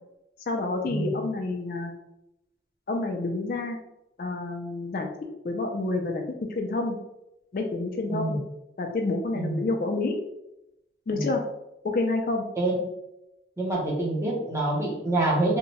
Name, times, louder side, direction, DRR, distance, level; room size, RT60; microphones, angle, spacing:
voice 1, 0.5-1.9 2.9-3.8 4.2-5.1 5.4-7.0 7.5-8.4 8.8-10.2 11.1-11.4 11.8-12.4, left 2 dB, 50° left, 3 dB, 0.3 m, -28 dB
voice 2, 13.6-15.6, right 2 dB, 15° right, -4 dB, 0.7 m, -26 dB
2.7 x 2.1 x 2.9 m, 0.87 s
head